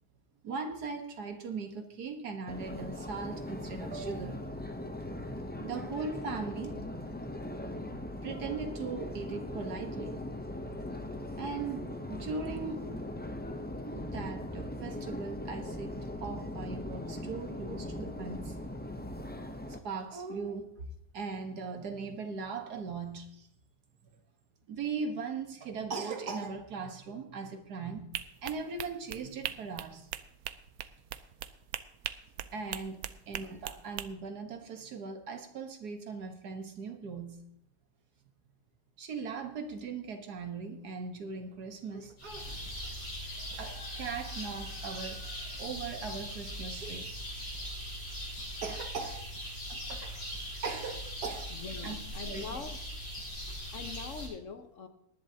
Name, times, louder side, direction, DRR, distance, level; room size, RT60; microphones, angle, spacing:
voice 1, 0.4-4.4 5.6-6.8 8.2-10.2 11.4-12.9 13.9-15.9 16.2-18.6 19.8-20.8 21.1-23.5 24.7-28.1 28.4-30.1 32.5-33.0 33.3-37.4 39.0-42.9 43.5-45.2 45.6-47.1 48.6-50.2 50.6-51.5 51.8-52.0 52.2-52.6, right 4 dB, 90° right, 6 dB, 1.9 m, -39 dB
Subway metro underground, 2.5-19.8, left 1 dB, 15° left, 0.3 m, -40 dB
sound 1, 28.1-34.1, right 11 dB, 75° right, 1.0 m, -40 dB
sound 2, 42.2-54.3, equal, 80° left, 6.1 m, -40 dB
voice 2, 51.5-52.7 53.7-54.9, left 5 dB, 55° left, 8 dB, 1.3 m, -43 dB
19.0 x 10.5 x 2.8 m, 0.73 s
omnidirectional pair, 1.6 m